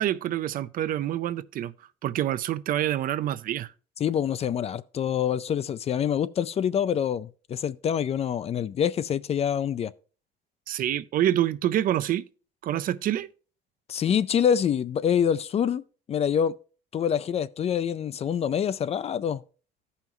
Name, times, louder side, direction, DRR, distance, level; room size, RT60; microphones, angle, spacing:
voice 1, 0.0-1.7 2.0-3.7 10.7-12.2 12.6-13.3, right 12 dB, 55° right, 0.5 m, -26 dB
voice 2, 4.0-9.9 13.9-15.8 16.1-16.5 16.9-19.4, left 8 dB, 40° left, 0.4 m, -26 dB
14.0 x 5.6 x 3.0 m
cardioid pair, 110°, 17 cm